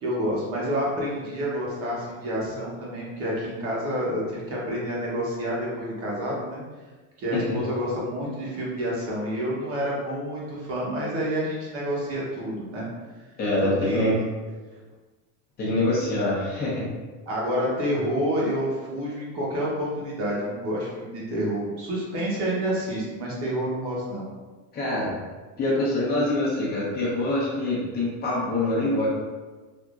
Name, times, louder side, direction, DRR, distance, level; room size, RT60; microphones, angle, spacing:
voice 1, 0.0-6.6 7.2-12.9 13.6-14.1 17.3-24.2, equal, 45° right, -5 dB, 1.0 m, -28 dB
voice 2, 13.4-14.2 15.6-16.9 24.7-25.1 25.6-29.1, left 1 dB, 30° left, -6 dB, 0.8 m, -25 dB
3.5 x 2.5 x 2.4 m, 1.3 s
cardioid pair, 160°, 32 cm